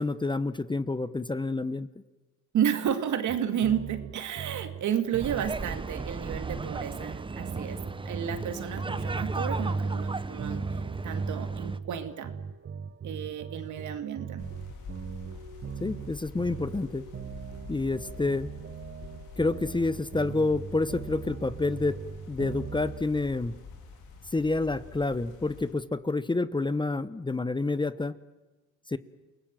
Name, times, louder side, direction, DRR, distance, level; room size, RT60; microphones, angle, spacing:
voice 1, 0.0-1.9 15.8-17.1 17.7-18.5 19.4-22.0 22.3-23.5 24.3-28.1 28.9-29.0, left 3 dB, 15° left, 15 dB, 0.9 m, -28 dB
voice 2, 2.5-10.6 11.0-12.3 13.0-14.5, right 9 dB, 75° right, 8 dB, 2.4 m, -31 dB
sound 1, 3.3-23.0, right 7 dB, 40° right, 1.1 m, -41 dB
sound 2, 5.2-11.8, right 3 dB, 15° right, 0.8 m, -34 dB
sound 3, 14.4-25.7, left 5 dB, 80° left, 4.3 m, -46 dB
29.0 x 19.0 x 7.7 m, 1.1 s
cardioid pair, 90°, 30 cm